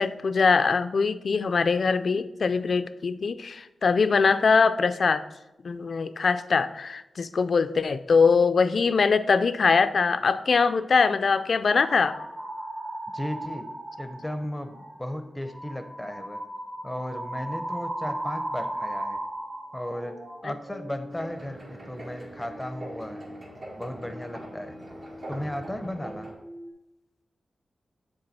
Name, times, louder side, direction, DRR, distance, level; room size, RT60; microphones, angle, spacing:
voice 1, 0.0-5.2 5.6-12.2 20.4-20.5, left 5 dB, 65° left, 13 dB, 0.3 m, -22 dB
sound 1, 11.7-14.3 14.7-15.0 15.4-25.8 26.0-26.7, right 1 dB, 25° right, 2.0 m, -38 dB
voice 2, 13.1-13.7 14.0-16.4 16.8-19.2 19.7-23.3 23.8-24.8 25.3-26.3, left 1 dB, 10° left, 7 dB, 0.6 m, -35 dB
sound 2, 21.1-26.3, right 1 dB, 60° right, 1.6 m, -43 dB
6.7 x 3.8 x 4.1 m, 0.94 s
cardioid pair, 45°, 0 cm